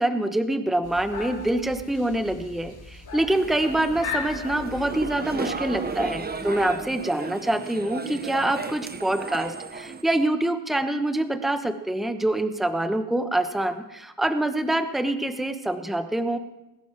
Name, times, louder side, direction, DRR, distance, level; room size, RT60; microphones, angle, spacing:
voice 1, 0.0-16.4, right 1 dB, ahead, 9 dB, 1.0 m, -25 dB
sound 1, 0.8-6.9, left 5 dB, 50° left, 4.2 m, -39 dB
sound 2, 3.3-10.0, right 4 dB, 20° right, 1.0 m, -34 dB
20.5 x 11.5 x 4.9 m, 1.0 s
cardioid pair, 85°, 47 cm